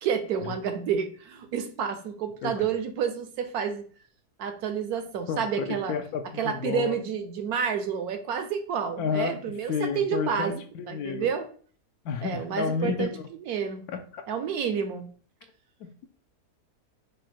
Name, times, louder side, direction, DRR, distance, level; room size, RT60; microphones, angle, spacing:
voice 1, 0.0-3.9 4.4-6.0 6.4-11.5 12.2-13.1 13.5-13.8 14.3-15.1, right 7 dB, 70° right, 7 dB, 1.1 m, -29 dB
voice 2, 5.3-7.0 9.0-9.4 9.7-11.3 12.0-13.2 13.9-14.2 15.8-16.1, left 6 dB, 70° left, 7 dB, 1.0 m, -31 dB
5.0 x 2.2 x 4.3 m, 0.43 s
omnidirectional pair, 1.7 m